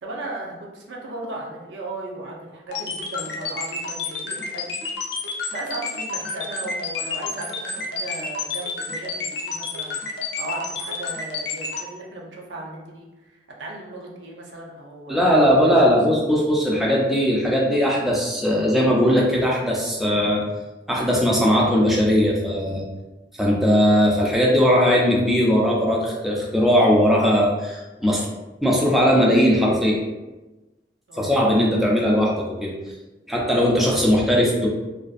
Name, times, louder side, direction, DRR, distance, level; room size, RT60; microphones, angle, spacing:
voice 1, 0.0-4.9 5.1-15.8 31.1-31.3, right 2 dB, 80° right, -2 dB, 0.5 m, -36 dB
sound 1, 2.7-11.8, left 4 dB, 65° left, 0.4 m, -29 dB
voice 2, 15.1-20.4 20.9-22.9 23.4-28.3 28.6-30.0 31.1-32.7 33.3-34.7, equal, ahead, -4 dB, 0.3 m, -19 dB
2.4 x 2.3 x 2.4 m, 1.1 s
head